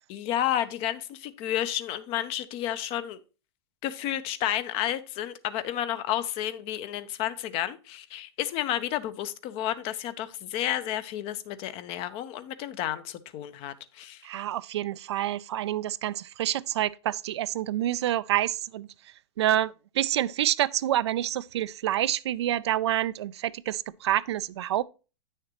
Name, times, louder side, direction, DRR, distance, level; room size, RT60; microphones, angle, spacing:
voice 1, 0.1-3.2 3.8-14.3, left 12 dB, 40° left, 0.7 m, -31 dB
voice 2, 14.2-18.9 19.4-24.8, right 12 dB, 75° right, 0.4 m, -28 dB
8.8 x 6.5 x 3.0 m
hypercardioid pair, 110°, 14 cm